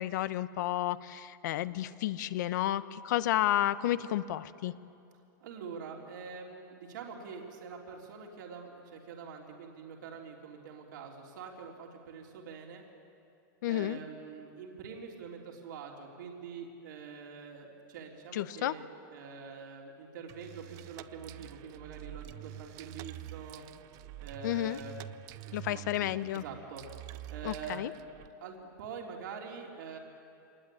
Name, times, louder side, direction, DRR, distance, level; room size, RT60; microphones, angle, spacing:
voice 1, 0.0-4.7 13.6-14.0 18.3-18.7 24.4-24.8 25.5-26.4 27.4-27.9, left 13 dB, 65° left, 14 dB, 0.9 m, -31 dB
voice 2, 5.4-12.8 13.7-23.6 24.2-24.9 25.4-26.8 27.3-27.9 28.4-30.0, right 6 dB, 75° right, 0 dB, 3.4 m, -45 dB
sound 1, 20.3-28.3, right 14 dB, 35° right, 0.6 m, -47 dB
25.0 x 20.0 x 9.9 m, 2.6 s
supercardioid pair, 160°, 10 cm